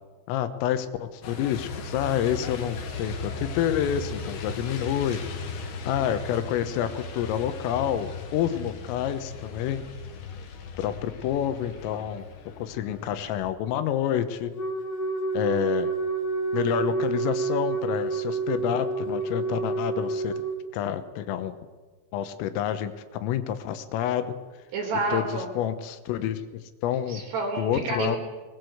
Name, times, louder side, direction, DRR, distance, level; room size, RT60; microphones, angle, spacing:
voice 1, 0.3-5.2 5.8-9.8 10.8-12.3 12.6-14.5 15.3-15.9 16.5-20.3 20.7-21.6 22.1-24.4 25.1-26.4 26.8-27.2 27.6-28.2, left 10 dB, 80° left, 10 dB, 3.7 m, -28 dB
Truck, 1.2-13.5, left 3 dB, 60° left, 4.0 m, -37 dB
Wind instrument woodwind instrument, 14.5-20.6, right 3 dB, 40° left, 2.6 m, -28 dB
voice 2, 24.7-25.5 27.1-28.2, right 3 dB, 55° right, 3 dB, 5.6 m, -29 dB
21.0 x 21.0 x 7.9 m, 1.4 s
omnidirectional pair, 5.9 m